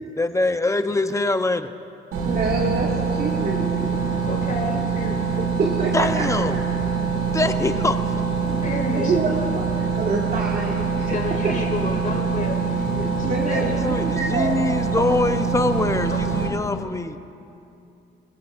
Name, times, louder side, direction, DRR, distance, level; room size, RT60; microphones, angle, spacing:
voice 1, 0.2-1.7 5.9-6.6 7.3-8.0 13.8-17.2, left 2 dB, 15° left, 9 dB, 0.8 m, -23 dB
sound 1, 2.1-16.5, right 5 dB, 85° right, 2.4 m, -24 dB
voice 2, 2.2-4.0 5.4-6.2 9.0-11.2 11.4-11.6 13.2-15.1, right 3 dB, 50° right, -2 dB, 2.0 m, -26 dB
voice 3, 4.2-5.4 8.4-9.6 11.0-13.8 16.1-16.3, left 3 dB, 40° left, 2 dB, 2.5 m, -31 dB
28.0 x 16.5 x 2.6 m, 2.7 s
cardioid pair, 90°, 20 cm